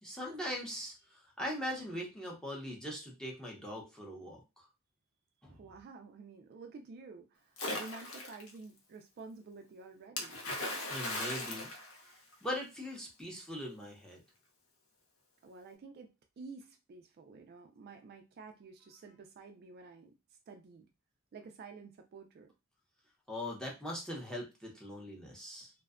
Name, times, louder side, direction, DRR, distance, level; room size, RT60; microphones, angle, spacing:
voice 1, 0.0-4.4 5.4-5.6 10.9-11.7 12.4-14.2 23.3-25.7, equal, 5° left, -2 dB, 0.6 m, -41 dB
voice 2, 5.5-10.4 15.4-20.1 20.5-20.9 21.3-22.5, right 4 dB, 45° right, 5 dB, 0.3 m, -51 dB
Splash splatter, 7.6-8.5 10.2-12.6, left 2 dB, 70° left, 0.7 m, -38 dB
2.5 x 2.1 x 2.4 m, 0.26 s
head